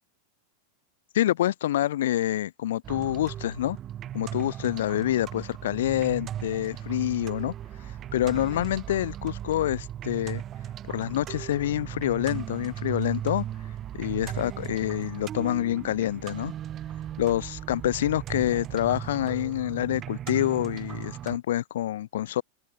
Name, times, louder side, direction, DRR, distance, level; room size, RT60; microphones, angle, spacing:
voice 1, 1.1-3.8 4.1-7.5 8.1-10.4 10.9-13.4 14.0-16.5 17.2-22.4, left 13 dB, 75° left, 0.4 m, -27 dB
sound 1, 2.8-21.4, right 11 dB, 20° right, 0.8 m, -37 dB
supercardioid pair, 175°, 0 cm